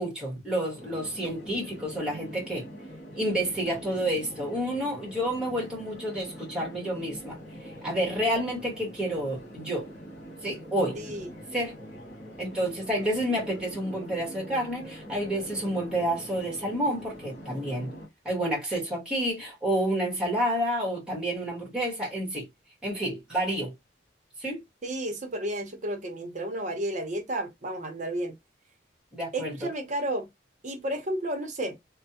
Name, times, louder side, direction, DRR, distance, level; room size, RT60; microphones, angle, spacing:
voice 1, 0.0-2.7 3.1-7.4 7.8-9.9 10.4-11.0 11.5-11.8 12.4-17.9 18.2-22.5 22.8-23.7 24.4-24.6 29.1-29.7, right 1 dB, 5° right, 1.3 m, -29 dB
sound 1, 0.8-18.1, equal, 40° left, 1.8 m, -44 dB
voice 2, 10.9-11.3 24.8-28.3 29.3-30.3 30.6-31.8, right 1 dB, 40° right, 0.8 m, -32 dB
3.2 x 2.2 x 2.7 m
head